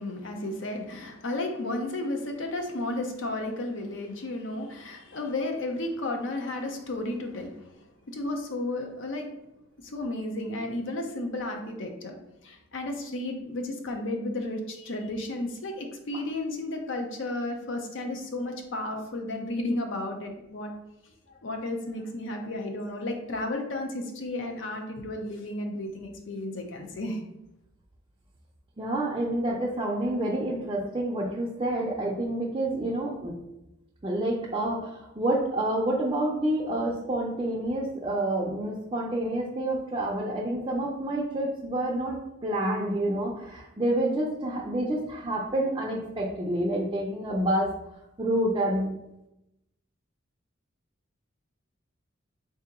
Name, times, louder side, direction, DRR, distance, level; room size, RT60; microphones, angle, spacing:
voice 1, 0.0-9.3 9.8-12.2 12.4-20.7 21.0-27.2, left 2 dB, 65° left, 3 dB, 0.6 m, -33 dB
voice 2, 28.8-33.4 34.0-47.7 48.2-48.9, right 1 dB, 25° right, -5 dB, 0.4 m, -28 dB
3.8 x 2.8 x 3.5 m, 0.88 s
head